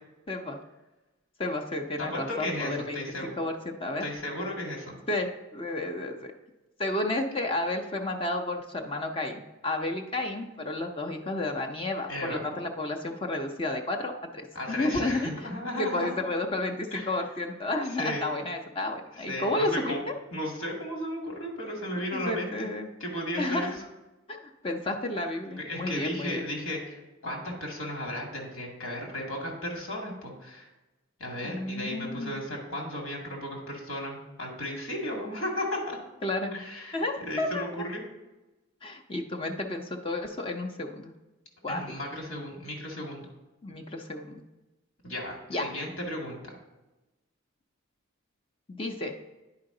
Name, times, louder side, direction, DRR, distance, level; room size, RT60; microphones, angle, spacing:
voice 1, 0.3-0.6 1.4-4.0 5.1-6.3 6.8-15.3 15.8-20.1 22.1-22.9 23.4-23.8 24.3-26.4 31.4-32.4 36.2-36.5 36.9-37.6 38.8-41.1 41.6-41.8 43.6-44.4 45.5-45.6 48.7-49.1, left 2 dB, 25° left, 3 dB, 0.6 m, -31 dB
voice 2, 2.0-3.3 4.0-4.9 12.1-12.4 14.5-16.2 16.9-17.2 17.9-18.3 19.2-20.0 20.3-22.7 23.0-23.8 25.6-30.7 31.2-36.0 36.5-38.0 41.7-43.3 45.0-46.6, left 1 dB, 80° left, 0 dB, 2.0 m, -35 dB
9.7 x 5.0 x 3.8 m, 1.1 s
head